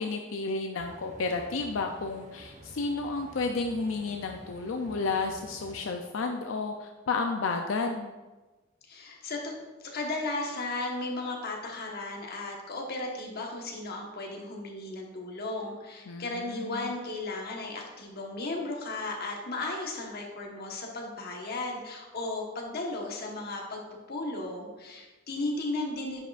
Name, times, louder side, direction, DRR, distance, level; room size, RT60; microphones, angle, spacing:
voice 1, 0.0-8.1 16.1-16.9, left 3 dB, 85° left, 4 dB, 0.5 m, -32 dB
sound 1, 0.8-5.9, right 1 dB, 40° right, 1.0 m, -50 dB
voice 2, 8.9-26.2, left 2 dB, 55° left, 0 dB, 1.2 m, -35 dB
9.6 x 5.7 x 2.5 m, 1.2 s
head